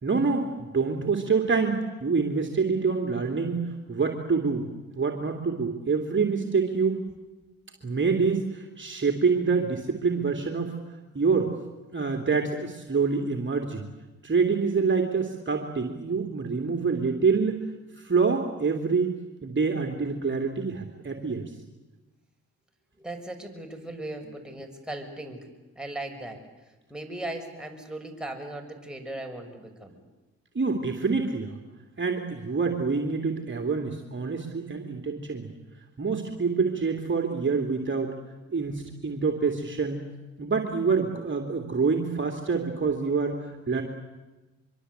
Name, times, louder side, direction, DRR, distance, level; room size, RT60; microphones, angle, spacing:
voice 1, 0.0-4.7 5.0-7.0 7.8-10.7 11.1-11.5 11.9-13.9 14.2-17.6 18.0-19.1 19.4-21.4 30.5-31.6 32.0-35.5 36.0-38.1 38.5-40.0 40.4-43.8, right 5 dB, 35° right, 3 dB, 2.9 m, -26 dB
voice 2, 23.0-25.5 25.8-26.4 26.9-30.0, right 1 dB, ahead, 3 dB, 6.3 m, -38 dB
24.5 x 24.0 x 8.2 m, 1.1 s
hypercardioid pair, 50°, 34 cm